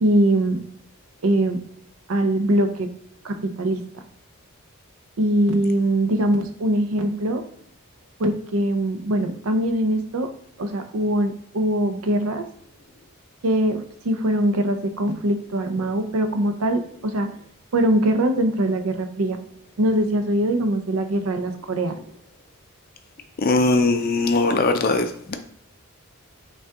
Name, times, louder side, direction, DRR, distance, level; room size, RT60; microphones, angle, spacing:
voice 1, 0.0-0.6 1.2-1.6 2.1-2.9 3.2-3.8 5.2-7.4 8.2-10.3 10.6-12.4 13.4-17.3 17.7-19.4 19.8-22.0, right 1 dB, 75° right, 7 dB, 0.5 m, -22 dB
voice 2, 23.4-25.4, left 3 dB, 45° left, 7 dB, 0.4 m, -20 dB
5.3 x 2.3 x 3.6 m, 0.68 s
head